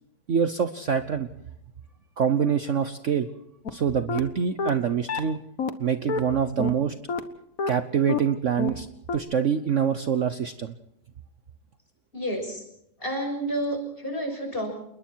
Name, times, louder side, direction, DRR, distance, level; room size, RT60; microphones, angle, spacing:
voice 1, 0.3-1.3 2.2-3.3 3.7-5.4 5.8-6.9 7.7-8.9 9.1-10.7, right 7 dB, 50° right, 10 dB, 1.1 m, -25 dB
sound 1, 3.7-3.8 4.1-4.2 4.6-4.7 5.1-5.2 5.6-5.7 6.1-6.2 6.6-6.7 7.1-7.2 7.6-7.7 8.1-8.2 8.6-8.7 9.1-9.2, left 5 dB, 55° left, 1.7 m, -27 dB
voice 2, 12.1-12.6 13.0-14.7, right 1 dB, 30° left, 4 dB, 6.8 m, -30 dB
28.5 x 21.0 x 4.6 m, 0.77 s
omnidirectional pair, 1.8 m